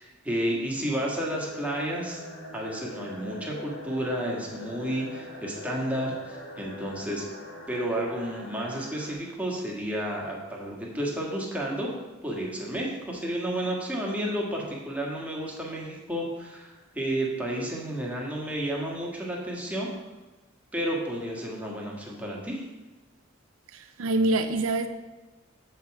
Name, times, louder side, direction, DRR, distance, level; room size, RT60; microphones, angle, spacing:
voice 1, 0.0-2.2 2.5-7.3 7.7-11.9 12.2-19.9 20.7-22.6, right 1 dB, 5° right, -3 dB, 1.7 m, -31 dB
sound 1, 1.3-9.1, left 1 dB, 65° left, 1.5 m, -43 dB
voice 2, 23.7-24.9, right 2 dB, 85° right, 7 dB, 0.6 m, -25 dB
7.2 x 6.8 x 4.8 m, 1.1 s
head